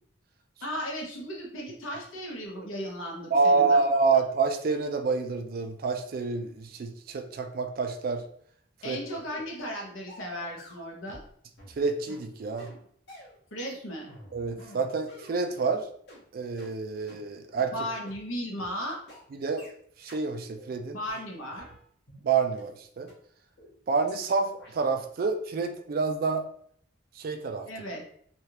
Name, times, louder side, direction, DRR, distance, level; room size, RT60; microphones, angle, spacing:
voice 1, 0.6-3.8 8.8-11.2 13.5-14.1 17.7-19.0 20.9-21.7 27.7-28.0, equal, 85° left, 0 dB, 0.9 m, -36 dB
voice 2, 3.3-8.2 8.8-9.0 11.8-12.7 14.3-15.9 16.3-17.7 19.3-19.7 20.0-21.0 22.2-23.1 23.9-26.5 27.2-27.7, right 4 dB, 45° right, 6 dB, 0.3 m, -27 dB
sound 1, 9.1-9.3 9.6-9.8 10.1-11.3 11.6-15.7 16.1-16.2 16.6-16.7 17.1-17.2 17.6-17.7 18.1-18.2 18.6-18.7 19.1-19.2 19.6-19.7 20.1-20.2 20.6-20.7 21.1-22.2 22.6-22.7 23.1-23.2 23.6-23.7 24.1-24.2 24.6-24.7, equal, 55° left, 1.0 m, -50 dB
3.3 x 2.4 x 2.8 m, 0.63 s
head